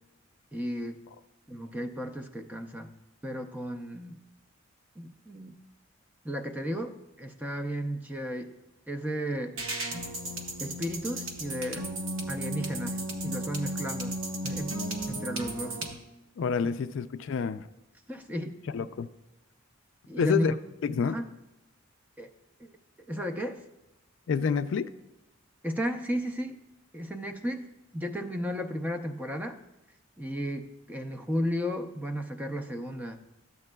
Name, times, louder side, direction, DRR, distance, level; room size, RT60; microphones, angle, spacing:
voice 1, 0.5-1.0 1.5-3.0 3.2-4.2 5.0-5.5 6.2-8.5 8.9-9.6 10.6-11.9 12.3-14.2 14.4-14.8 15.1-15.8 18.1-18.6 20.1-20.6 21.1-21.3 22.2-22.3 22.6-23.6 25.6-26.6 26.9-27.7 27.9-29.6 30.2-33.2, equal, 10° right, 5 dB, 0.4 m, -34 dB
sound 1, 9.6-15.9, right 1 dB, 70° right, 1.1 m, -34 dB
voice 2, 16.4-17.7 18.7-19.1 20.2-20.5 20.8-21.2 24.3-24.9, left 6 dB, 60° left, 11 dB, 0.3 m, -28 dB
13.0 x 8.2 x 2.2 m, 0.96 s
head